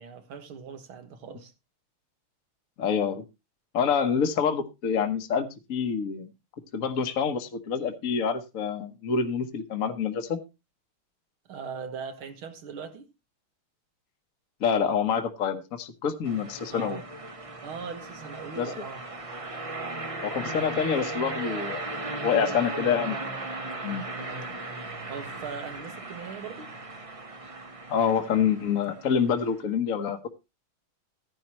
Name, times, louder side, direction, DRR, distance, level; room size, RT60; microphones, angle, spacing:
voice 1, 0.0-1.5 11.5-13.1 16.7-17.1 17.6-19.0 22.3-22.6 24.1-24.5 25.1-26.7, right 6 dB, 75° right, 2.3 m, -40 dB
voice 2, 2.8-3.2 3.7-6.3 6.7-10.4 14.6-17.0 18.6-18.7 20.2-21.9 22.2-23.4 23.8-24.0 27.9-30.3, left 7 dB, 50° left, 1.3 m, -27 dB
sound 1, 16.2-29.6, right 2 dB, 25° right, 0.7 m, -37 dB
14.0 x 10.5 x 2.9 m
omnidirectional pair, 2.3 m